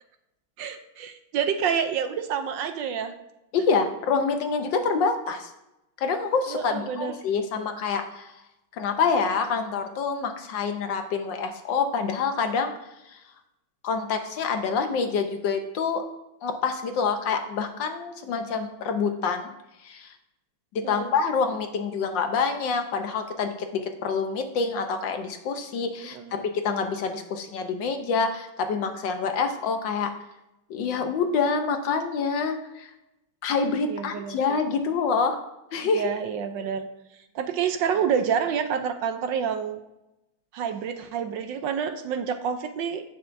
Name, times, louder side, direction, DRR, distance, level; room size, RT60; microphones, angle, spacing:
voice 1, 0.6-3.1 6.5-7.1 20.8-21.1 26.0-26.3 33.9-34.6 35.8-36.9 37.3-39.8 40.5-43.0, right 7 dB, 70° right, 8 dB, 1.2 m, -28 dB
voice 2, 3.5-5.5 6.0-8.3 8.8-12.7 13.1-13.2 13.8-16.0 16.4-19.5 19.8-20.1 20.7-30.1 30.7-32.9 33.4-35.4 35.7-36.1, left 5 dB, 70° left, 6 dB, 1.4 m, -26 dB
16.5 x 5.7 x 2.6 m, 0.91 s
omnidirectional pair, 2.3 m